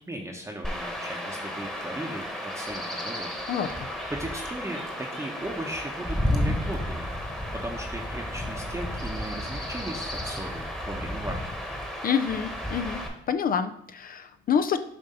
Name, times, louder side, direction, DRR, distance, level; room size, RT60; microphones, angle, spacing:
voice 1, 0.1-3.3 4.1-11.6, right 1 dB, 15° right, 1 dB, 0.8 m, -37 dB
Chirp tweet / Wind / Stream, 0.6-13.1, left 1 dB, 5° left, 1.2 m, -32 dB
voice 2, 3.5-3.9 12.0-13.0 13.3-14.8, left 7 dB, 45° left, 10 dB, 0.4 m, -27 dB
7.5 x 2.6 x 5.4 m, 0.74 s
cardioid pair, 90°, 20 cm